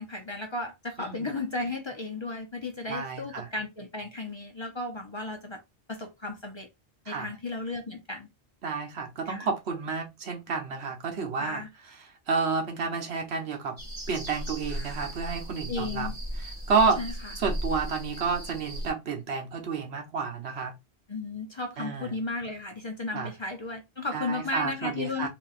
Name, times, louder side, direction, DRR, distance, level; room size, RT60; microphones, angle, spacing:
voice 1, 0.0-5.6 5.9-6.7 7.1-8.3 9.3-9.5 11.4-11.7 15.7-16.2 17.0-17.3 21.1-25.3, left 3 dB, 35° left, 0.6 m, -34 dB
voice 2, 1.0-1.3 2.9-3.5 7.1-7.3 8.6-11.6 12.3-13.8 14.1-16.1 16.7-17.0 17.4-20.7 21.8-22.1 23.1-23.3 24.1-25.3, right 5 dB, 85° right, 1.2 m, -30 dB
sound 1, 13.8-18.9, equal, 30° right, 1.5 m, -36 dB
3.9 x 2.7 x 2.4 m
omnidirectional pair, 1.1 m